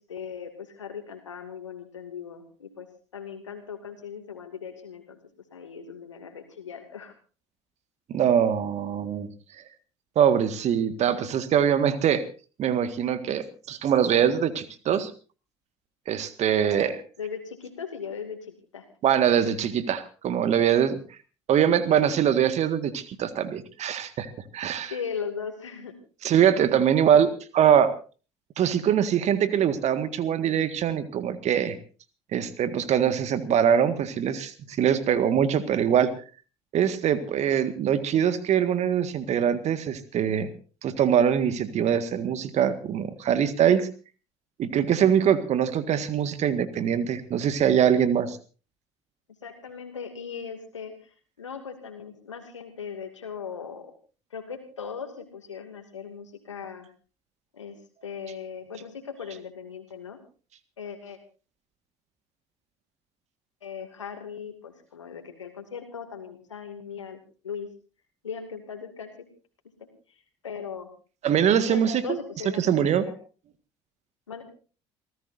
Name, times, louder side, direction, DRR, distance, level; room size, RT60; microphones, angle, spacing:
voice 1, 0.0-2.9 3.1-5.2 5.5-7.1 16.6-18.8 24.9-25.9 49.4-51.1 51.4-53.9 54.3-56.9 57.5-57.8 58.0-60.2 60.8-61.2 63.6-67.7 68.2-69.1 70.4-70.9 71.7-73.1 74.3-74.4, left 6 dB, 85° left, 6 dB, 2.5 m, -38 dB
voice 2, 8.1-9.3 10.2-12.2 12.6-15.1 16.1-16.9 19.0-21.0 21.5-24.3 24.5-24.9 26.2-27.9 28.6-31.8 32.3-36.1 36.7-40.5 40.8-43.9 44.6-48.4 71.2-72.2 72.6-73.0, right 9 dB, 50° right, 11 dB, 1.8 m, -23 dB
28.5 x 14.5 x 2.7 m, 0.37 s
figure-of-eight pair, 60°, 15 cm